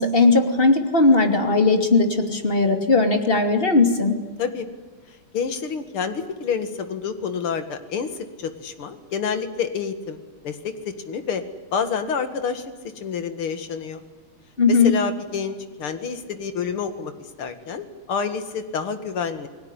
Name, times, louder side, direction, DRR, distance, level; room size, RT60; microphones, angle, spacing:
voice 1, 0.0-4.2 14.6-14.9, left 3 dB, 25° left, 6 dB, 2.9 m, -18 dB
voice 2, 5.3-8.1 8.4-11.4 11.7-12.7 13.0-14.0 14.7-17.1 17.4-19.5, left 6 dB, 85° left, 9 dB, 2.8 m, -28 dB
28.5 x 20.0 x 9.9 m, 1.3 s
omnidirectional pair, 2.3 m